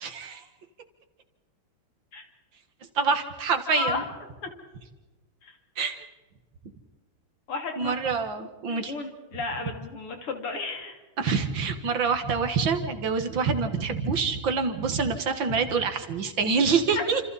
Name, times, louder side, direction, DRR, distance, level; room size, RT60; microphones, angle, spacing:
voice 1, 0.0-0.4 3.0-4.0 5.8-6.0 7.8-8.9 11.2-17.2, right 5 dB, 60° right, 7 dB, 2.3 m, -26 dB
voice 2, 3.7-4.0 4.4-4.5 5.4-5.5 7.5-7.9 8.7-11.0 16.9-17.1, left 3 dB, 80° left, 4 dB, 3.8 m, -33 dB
29.5 x 27.5 x 4.2 m, 1.2 s
omnidirectional pair, 2.4 m